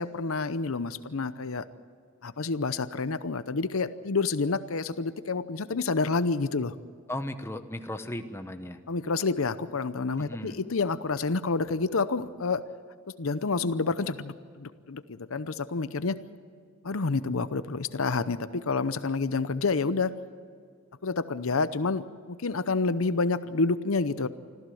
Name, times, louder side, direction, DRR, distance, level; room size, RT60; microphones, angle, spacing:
voice 1, 0.0-1.7 2.2-6.7 8.9-12.6 13.2-16.2 16.8-20.1 21.0-24.3, left 4 dB, 75° left, 13 dB, 0.8 m, -28 dB
voice 2, 7.1-8.8 10.2-10.6, left 1 dB, 10° left, 7 dB, 1.0 m, -36 dB
25.5 x 15.0 x 7.8 m, 2.1 s
head